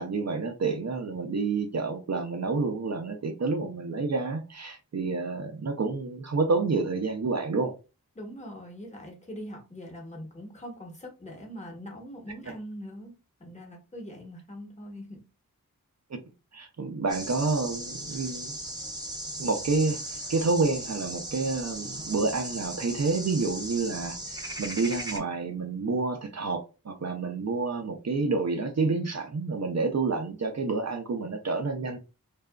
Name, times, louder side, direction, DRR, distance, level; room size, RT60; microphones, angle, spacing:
voice 1, 0.0-7.7 16.5-18.5 19.4-20.0 20.3-32.0, right 4 dB, 50° right, 0.5 m, -29 dB
voice 2, 8.1-13.1 13.4-15.2, equal, 20° left, 1.0 m, -42 dB
sound 1, 17.1-25.2, right 1 dB, 10° right, 0.7 m, -37 dB
2.6 x 2.4 x 2.2 m
wide cardioid pair, 65°, 35 cm